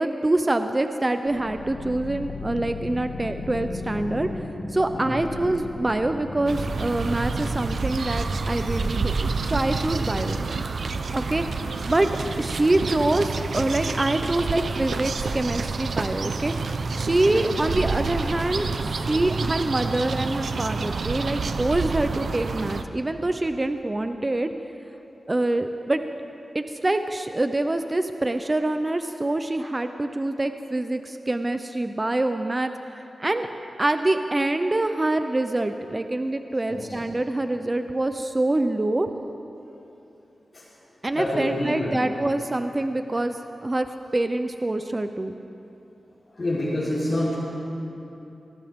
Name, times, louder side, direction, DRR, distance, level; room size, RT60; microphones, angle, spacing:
voice 1, 0.0-4.3 4.7-10.4 11.1-12.1 12.4-16.5 16.9-24.5 25.3-26.0 26.5-32.7 33.2-33.5 33.8-39.1 41.0-43.9 44.1-45.3, right 2 dB, 25° right, 8 dB, 0.6 m, -25 dB
sound 1, 1.3-12.6, left 2 dB, 75° left, 1.8 m, -37 dB
voice 2, 4.9-5.2 17.1-17.5 19.0-19.2 36.7-37.1 40.5-40.7 41.1-42.0 46.3-47.3, left 1 dB, 45° left, -11 dB, 4.0 m, -28 dB
sound 2, 6.5-22.8, right 4 dB, 70° right, 0.7 m, -28 dB
22.5 x 17.5 x 3.7 m, 2.9 s
wide cardioid pair, 100°, 0 cm